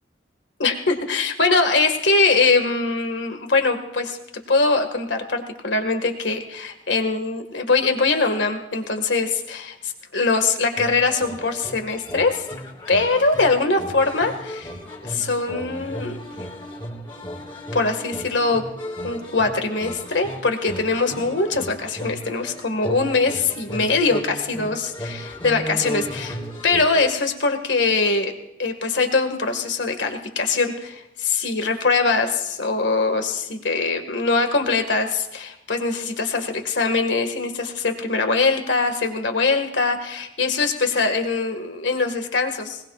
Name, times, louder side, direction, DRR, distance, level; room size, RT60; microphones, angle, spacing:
voice 1, 0.6-4.2 4.5-12.4 12.9-14.7 15.0-16.4 17.7-18.6 19.0-26.4 26.6-28.3 28.6-42.8, left 3 dB, 85° left, 5 dB, 1.9 m, -22 dB
sound 1, 10.7-27.1, equal, 25° left, 2.8 m, -35 dB
21.5 x 21.0 x 2.5 m, 0.90 s
head